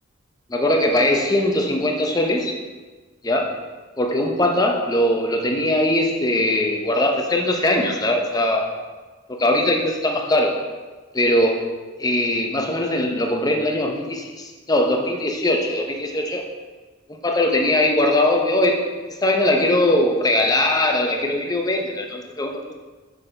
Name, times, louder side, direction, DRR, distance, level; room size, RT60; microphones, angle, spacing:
voice 1, 0.5-2.6 3.2-3.5 4.0-8.7 9.4-10.5 11.1-11.6 12.0-16.4 17.2-18.8 19.2-22.7, left 1 dB, 20° left, 2 dB, 0.6 m, -20 dB
6.6 x 5.7 x 3.3 m, 1.3 s
head